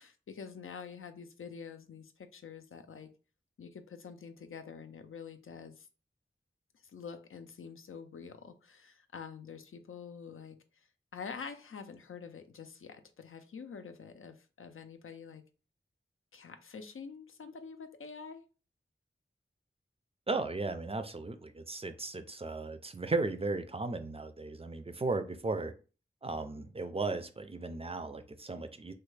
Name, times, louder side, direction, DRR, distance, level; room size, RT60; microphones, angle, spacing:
voice 1, 0.0-3.1 3.6-5.9 6.9-10.6 11.1-15.4 16.3-18.4, left 6 dB, 90° left, 8 dB, 0.4 m, -47 dB
voice 2, 20.3-25.7 26.2-28.9, right 3 dB, 30° right, 9 dB, 0.3 m, -36 dB
3.2 x 2.2 x 3.2 m, 0.36 s
wide cardioid pair, 70°, 20 cm